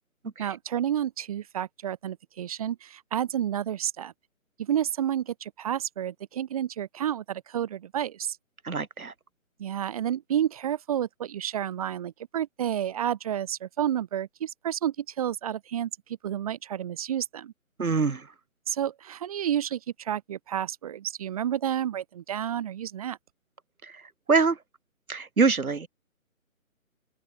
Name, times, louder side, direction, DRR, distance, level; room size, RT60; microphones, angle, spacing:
voice 1, 0.4-4.1 4.6-8.4 9.6-15.9 16.2-17.5 18.7-23.2, right 10 dB, 25° right, 4.0 m, -30 dB
voice 2, 8.6-9.1 17.8-18.3 23.8-24.0 24.3-24.6 25.1-25.9, right 4 dB, 85° right, 3.6 m, -24 dB
open air
hypercardioid pair, 170°, 42 cm